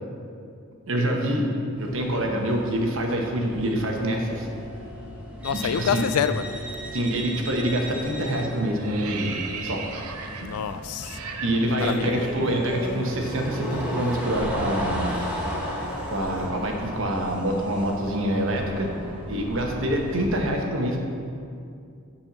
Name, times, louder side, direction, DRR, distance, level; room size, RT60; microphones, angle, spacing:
voice 1, 0.9-1.5 1.8-4.5 5.6-6.0 6.9-9.3 9.6-9.9 11.4-15.2 16.1-18.9 19.3-21.0, right 1 dB, 60° right, 1 dB, 1.0 m, -26 dB
sound 1, 1.8-20.4, equal, 5° right, 1.0 m, -37 dB
voice 2, 5.4-6.5 10.4-11.2 11.7-12.3, left 8 dB, 85° left, 12 dB, 0.3 m, -27 dB
sound 2, 7.5-7.8 8.1-13.1 13.3-13.5 13.8-17.9, right 5 dB, 85° right, 0.6 m, -39 dB
sound 3, 11.8-16.7, left 1 dB, 40° left, 1.1 m, -35 dB
8.9 x 4.3 x 5.9 m, 2.4 s
head